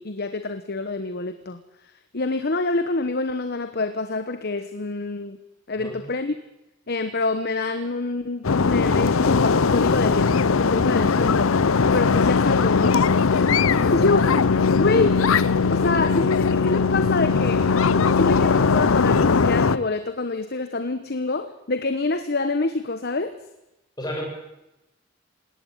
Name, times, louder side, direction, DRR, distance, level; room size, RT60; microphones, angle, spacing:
voice 1, 0.0-1.6 2.1-5.4 5.7-6.3 6.9-10.3 10.6-13.0 13.3-13.5 13.9-14.3 14.7-15.3 15.7-23.3, left 3 dB, 50° left, 10 dB, 1.1 m, -26 dB
voice 2, 5.8-6.0 17.2-17.3 24.0-24.2, equal, 20° left, -1 dB, 7.3 m, -32 dB
sound 1, 8.4-19.8, left 5 dB, 80° left, 0.7 m, -19 dB
19.5 x 18.0 x 9.0 m, 0.93 s
head